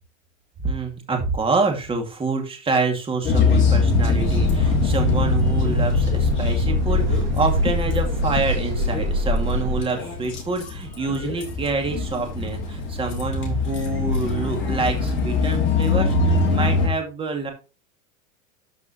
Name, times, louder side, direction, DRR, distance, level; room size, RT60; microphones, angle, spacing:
voice 1, 0.6-17.5, right 4 dB, 15° right, 3 dB, 2.3 m, -27 dB
sound 1, 3.2-16.9, left 4 dB, 30° left, 3.2 m, -23 dB
Truck, 4.2-9.8, equal, 30° right, 3.5 m, -25 dB
12.5 x 5.3 x 3.1 m, 0.30 s
supercardioid pair, 145°, 39 cm